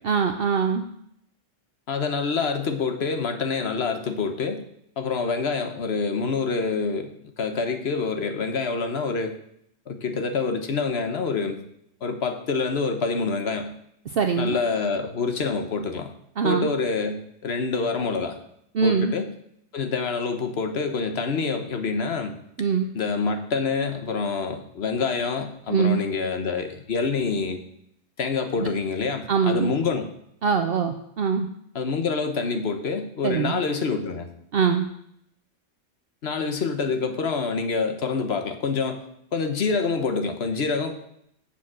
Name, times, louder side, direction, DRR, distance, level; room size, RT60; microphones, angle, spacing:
voice 1, 0.0-0.8 14.1-14.6 16.4-16.7 18.7-19.2 22.6-22.9 25.7-26.0 28.6-28.7 29.3-29.7 30.4-31.5 33.2-33.6 34.5-34.9, right 6 dB, 55° right, 6 dB, 0.8 m, -23 dB
voice 2, 1.9-4.6 5.0-7.1 7.4-9.4 9.9-11.6 12.0-13.7 14.4-16.1 16.4-18.4 18.8-19.3 19.7-22.3 22.9-27.6 28.2-30.1 31.7-34.3 36.2-39.0 39.3-40.9, left 4 dB, 60° left, 6 dB, 1.2 m, -26 dB
7.4 x 7.1 x 6.1 m, 0.72 s
omnidirectional pair, 1.3 m